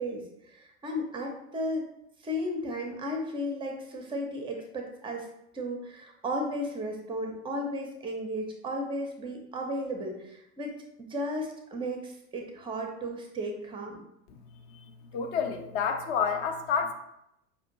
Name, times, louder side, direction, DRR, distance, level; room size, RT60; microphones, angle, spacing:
voice 1, 0.0-1.9 2.2-5.3 5.5-14.0, equal, 15° right, 3 dB, 0.5 m, -34 dB
voice 2, 15.1-16.9, left 6 dB, 40° left, 5 dB, 0.5 m, -29 dB
5.3 x 2.4 x 2.8 m, 0.81 s
figure-of-eight pair, 85°, 41 cm